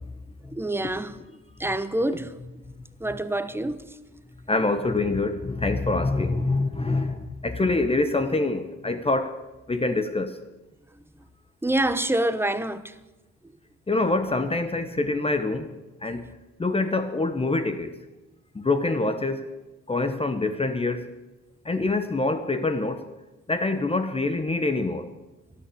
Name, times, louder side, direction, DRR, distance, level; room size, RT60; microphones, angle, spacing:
voice 1, 0.5-1.2 1.6-2.3 3.0-3.8 11.6-12.8, right 1 dB, 10° right, 1.0 m, -26 dB
voice 2, 4.5-9.4 9.7-10.4 13.9-15.7 16.0-16.3 16.6-18.0 18.5-19.5 19.9-21.1 21.6-23.1 23.5-25.1, left 2 dB, 20° left, 1.0 m, -25 dB
12.5 x 11.5 x 8.5 m
cardioid pair, 90°, 30 cm